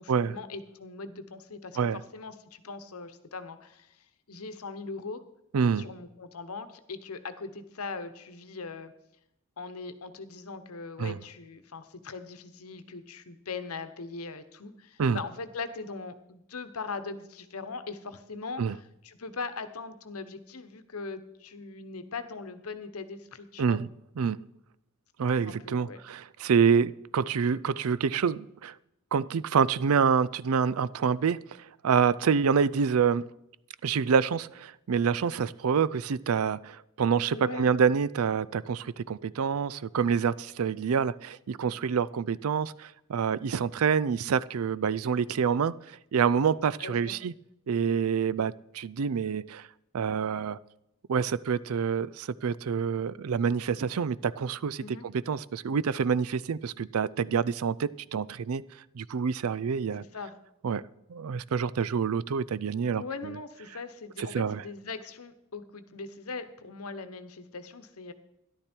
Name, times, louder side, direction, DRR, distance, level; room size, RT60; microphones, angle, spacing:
voice 1, 0.0-5.2 5.8-8.9 9.6-23.8 25.5-26.0 37.3-37.7 46.8-47.1 54.8-55.0 60.0-60.3 62.9-68.1, left 4 dB, 85° left, 11 dB, 1.0 m, -40 dB
voice 2, 5.5-5.9 11.0-11.2 15.0-15.2 18.6-18.7 23.6-23.9 24.2-24.4 25.2-28.7 29.1-31.4 31.8-33.2 33.8-45.7 46.1-47.3 47.7-49.7 49.9-50.6 51.1-54.8 55.3-58.6 58.9-60.0 60.6-60.8 61.1-63.3 64.2-64.6, right 6 dB, 75° right, 20 dB, 0.4 m, -27 dB
13.0 x 11.5 x 4.5 m, 0.83 s
head